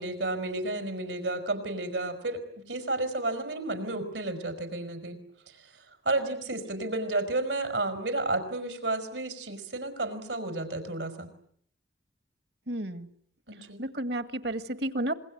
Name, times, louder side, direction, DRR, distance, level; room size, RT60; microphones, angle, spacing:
voice 1, 0.0-5.2 5.5-11.3 13.5-13.8, right 2 dB, 85° right, 8 dB, 5.4 m, -32 dB
voice 2, 12.7-13.1 13.8-15.2, right 1 dB, 65° right, 10 dB, 1.9 m, -31 dB
26.5 x 23.0 x 9.4 m, 0.64 s
head